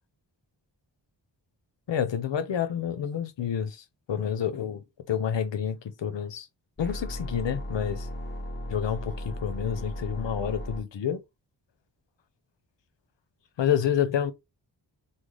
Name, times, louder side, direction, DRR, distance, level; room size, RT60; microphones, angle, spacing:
voice 1, 1.9-6.5 6.8-8.1 8.7-11.2 13.6-14.3, left 8 dB, 80° left, 0.7 m, -29 dB
sound 1, 6.8-10.8, equal, 25° left, 0.8 m, -36 dB
3.2 x 2.1 x 3.8 m
wide cardioid pair, 75°, 43 cm